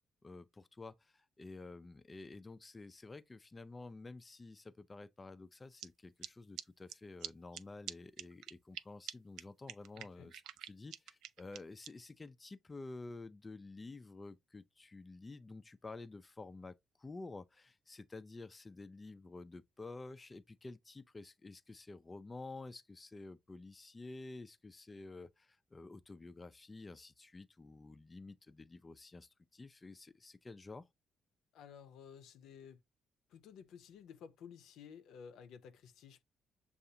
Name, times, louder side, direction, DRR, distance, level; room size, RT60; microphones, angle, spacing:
voice 1, 0.2-30.9, left 3 dB, 25° left, 0.3 m, -51 dB
sound 1, 5.8-5.9 6.2-6.3 6.6-6.7 6.9-7.0 7.2-7.3 7.5-7.6 7.9-8.0 8.2-8.8 9.1-9.2 9.4-9.5 9.7-11.9, right 11 dB, 90° right, 0.4 m, -44 dB
voice 2, 10.0-10.3 31.5-32.8 33.3-36.2, left 7 dB, 85° left, 0.6 m, -54 dB
6.6 x 2.4 x 2.7 m
cardioid pair, 90°, 0 cm